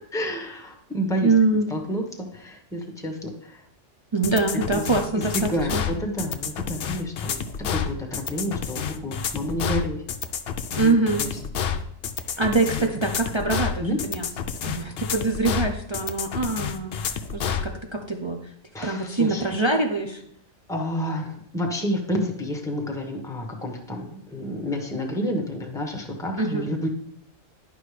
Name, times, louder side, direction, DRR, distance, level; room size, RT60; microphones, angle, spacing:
voice 1, 0.1-1.3 1.7-3.6 4.7-4.8 5.1-7.4 7.7-10.0 10.8-11.3 12.2-12.4 13.8-14.0 18.7-19.4 20.7-26.9, equal, 5° left, 2 dB, 1.0 m, -29 dB
voice 2, 1.2-1.7 4.1-5.8 10.8-11.2 12.4-14.3 14.6-18.4 18.8-20.2 26.4-26.7, right 3 dB, 40° right, 2 dB, 0.4 m, -24 dB
sound 1, 4.2-17.7, left 7 dB, 60° left, 0.7 m, -29 dB
11.0 x 5.3 x 3.3 m, 0.71 s
omnidirectional pair, 1.4 m